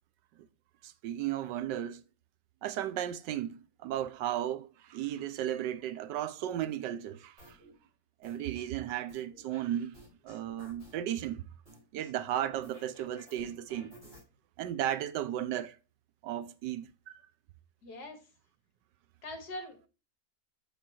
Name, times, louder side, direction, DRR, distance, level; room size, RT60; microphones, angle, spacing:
voice 1, 0.8-2.0 2.6-7.6 8.2-10.0 10.2-11.4 11.9-13.9 14.6-15.8 16.2-16.9, right 11 dB, 85° right, 1.2 m, -35 dB
sound 1, 7.4-7.7 8.2-9.6 9.9-11.1 11.7-14.2, right 1 dB, 25° right, 5.0 m, -54 dB
voice 2, 17.8-18.2 19.2-19.9, left 1 dB, 65° left, 1.9 m, -42 dB
7.1 x 6.9 x 2.9 m
omnidirectional pair, 1.9 m